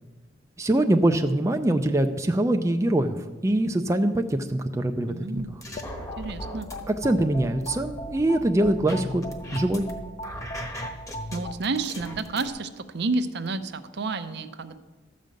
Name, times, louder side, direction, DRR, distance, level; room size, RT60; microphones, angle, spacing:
voice 1, 0.6-5.4 6.9-9.3 9.5-9.9, right 1 dB, 15° right, 5 dB, 0.4 m, -23 dB
voice 2, 5.1-5.5 6.2-6.7 11.3-14.8, right 3 dB, 60° right, 10 dB, 0.6 m, -30 dB
sound 1, 5.4-6.8 7.2-9.9 10.2-12.5, equal, 15° left, 1.2 m, -39 dB
sound 2, 5.7-11.5, equal, 35° left, 0.6 m, -37 dB
13.0 x 5.2 x 7.6 m, 1.2 s
head